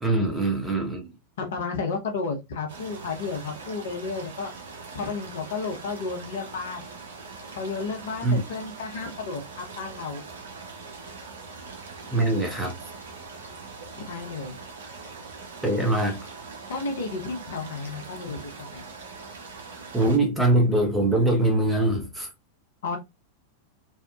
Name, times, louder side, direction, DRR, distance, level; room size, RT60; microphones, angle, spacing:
voice 1, 0.0-1.1 8.2-8.4 12.1-12.7 15.6-16.2 19.9-22.3, right 1 dB, 10° right, 0.9 m, -23 dB
voice 2, 1.4-4.5 4.9-6.9 7.5-10.2 14.0-14.6 16.7-18.8 22.8-23.0, left 4 dB, 60° left, 0.8 m, -32 dB
sound 1, 2.7-20.2, right 4 dB, 65° right, 0.6 m, -42 dB
2.8 x 2.3 x 2.3 m
figure-of-eight pair, 90°, 0 cm